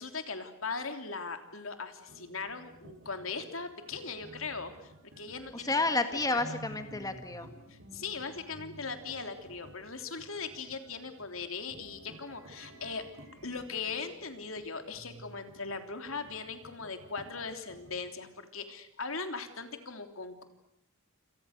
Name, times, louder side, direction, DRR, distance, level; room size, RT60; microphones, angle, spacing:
voice 1, 0.0-5.7 6.3-6.4 7.7-13.0 13.4-20.4, left 4 dB, 75° left, 7 dB, 3.3 m, -39 dB
sound 1, 2.1-18.1, equal, 80° right, 6.7 m, -53 dB
voice 2, 5.5-7.5, left 2 dB, 15° left, 7 dB, 1.8 m, -30 dB
28.5 x 28.0 x 6.7 m, 0.82 s
head